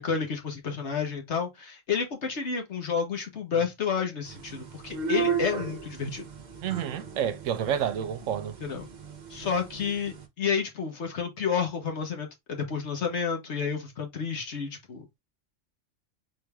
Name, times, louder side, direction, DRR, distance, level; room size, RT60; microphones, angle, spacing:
voice 1, 0.0-6.3 8.6-8.9 9.3-15.1, left 6 dB, 60° left, 1.4 m, -30 dB
sound 1, 4.2-10.3, right 6 dB, 40° right, 0.8 m, -35 dB
voice 2, 6.6-8.5, right 9 dB, 75° right, 0.9 m, -29 dB
3.9 x 3.4 x 3.4 m
omnidirectional pair, 1.3 m